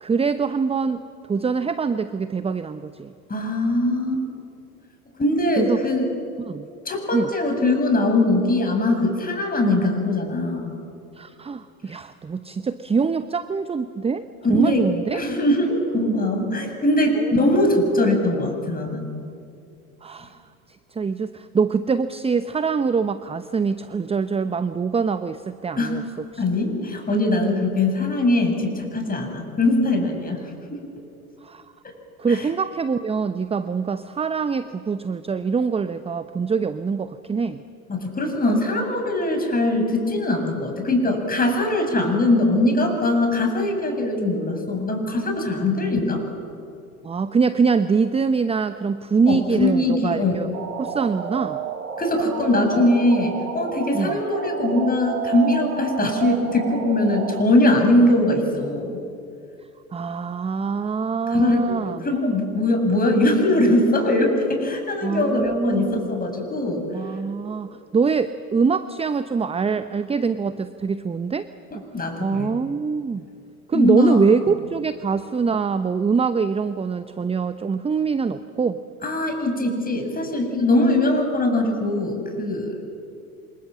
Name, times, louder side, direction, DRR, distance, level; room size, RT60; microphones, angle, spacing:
voice 1, 0.0-1.0 1.3-3.1 5.6-5.8 6.5-6.7 7.1-7.3 11.1-15.2 17.1-17.3 20.0-20.4 20.9-26.0 26.3-26.4 31.4-31.6 32.2-37.6 45.8-45.9 47.0-50.5 50.8-51.6 53.9-54.2 59.9-62.1 65.0-66.1 66.9-71.5 71.7-71.8 72.2-73.3 73.7-78.8, right 5 dB, 15° right, 12 dB, 0.8 m, -24 dB
voice 2, 3.3-4.2 5.2-6.1 6.9-10.7 14.5-14.8 15.1-19.1 25.8-26.0 26.4-30.4 30.7-30.8 31.8-31.9 32.3-32.5 37.9-46.2 49.3-50.4 52.0-59.0 61.3-66.9 71.7-72.5 73.7-74.2 79.0-82.8, left 1 dB, 20° left, 3 dB, 7.6 m, -21 dB
sound 1, 50.5-57.4, right 6 dB, 75° right, 2.4 m, -31 dB
28.0 x 26.5 x 7.7 m, 2.5 s
figure-of-eight pair, 75°, 44 cm